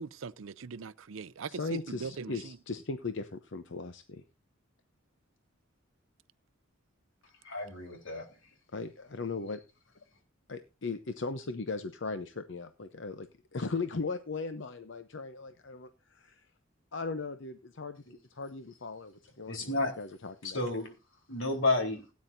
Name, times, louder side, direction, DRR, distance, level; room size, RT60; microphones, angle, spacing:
voice 1, 0.0-1.5 1.9-2.6, right 5 dB, 80° right, 0.5 m, -41 dB
voice 2, 1.5-4.2 8.7-9.6 10.5-16.5 16.9-18.0 18.3-20.6, left 4 dB, 65° left, 0.8 m, -38 dB
voice 3, 7.4-8.2 19.5-19.9 20.4-20.9 21.3-22.0, left 2 dB, 85° left, 3.9 m, -31 dB
17.0 x 9.4 x 2.7 m
head